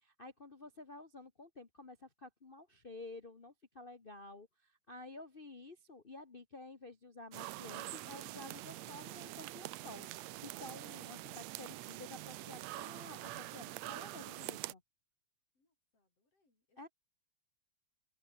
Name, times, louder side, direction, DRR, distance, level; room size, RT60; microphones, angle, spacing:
voice 1, 0.0-14.8 16.8-16.9, left 2 dB, 80° left, 0.4 m, -52 dB
sound 1, 7.3-14.7, right 17 dB, 75° right, 1.8 m, -45 dB
voice 2, 15.5-16.9, left 2 dB, 55° left, 8.7 m, -80 dB
omnidirectional pair, 3.3 m